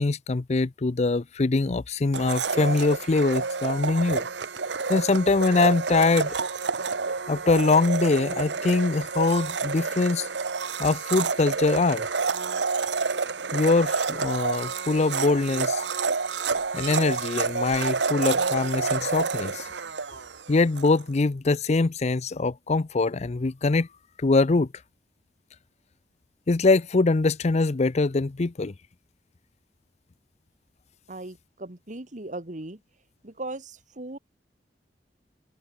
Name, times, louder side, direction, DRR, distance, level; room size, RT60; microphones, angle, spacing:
voice 1, 0.0-4.3 4.9-6.4 7.3-10.3 10.8-12.1 13.5-15.8 16.7-19.7 20.5-23.9 24.2-24.7 26.5-28.7, left 3 dB, 40° left, 0.5 m, -23 dB
Domestic sounds home sounds, 2.1-20.9, right 4 dB, 90° right, 1.2 m, -29 dB
sound 1, 16.4-17.0 17.4-18.0 18.4-18.8 19.2-19.3, left 1 dB, 20° left, 6.8 m, -57 dB
voice 2, 31.1-32.8 33.2-34.2, right 2 dB, 45° right, 1.8 m, -38 dB
head